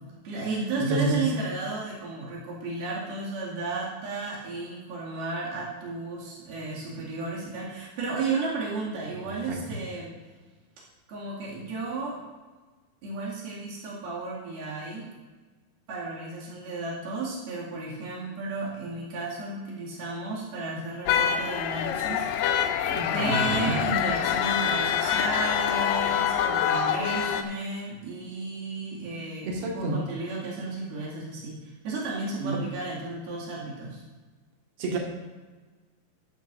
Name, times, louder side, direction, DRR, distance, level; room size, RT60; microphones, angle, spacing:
voice 1, 0.0-10.1 11.1-12.2 13.0-15.1 15.9-34.0, right 3 dB, 90° right, -6 dB, 4.2 m, -33 dB
voice 2, 0.9-1.3 9.2-9.6 23.2-23.8 29.5-30.0 32.4-32.6 34.8-35.0, right 2 dB, 50° right, -1 dB, 2.1 m, -28 dB
sound 1, 21.1-27.4, left 8 dB, 80° left, 2.2 m, -26 dB
13.0 x 12.5 x 2.6 m, 1.3 s
omnidirectional pair, 4.3 m